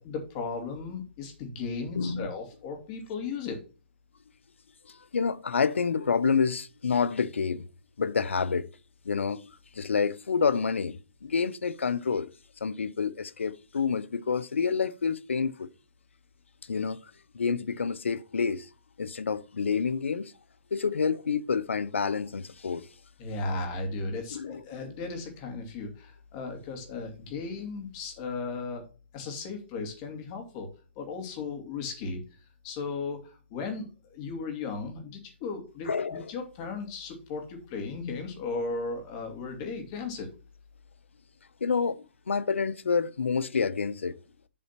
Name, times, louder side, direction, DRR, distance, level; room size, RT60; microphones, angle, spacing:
voice 1, 0.0-3.6 23.2-28.8 29.1-30.7 31.0-32.2 32.6-40.3, left 4 dB, 35° left, 2.6 m, -36 dB
voice 2, 2.0-2.3 4.9-7.6 8.0-8.7 9.0-12.3 12.6-15.7 16.6-17.0 17.3-18.7 19.0-20.3 20.7-22.9 24.3-24.6 35.9-36.3 41.6-44.2, left 5 dB, 85° left, 0.6 m, -28 dB
7.7 x 4.1 x 5.8 m
hypercardioid pair, 140°, 7 cm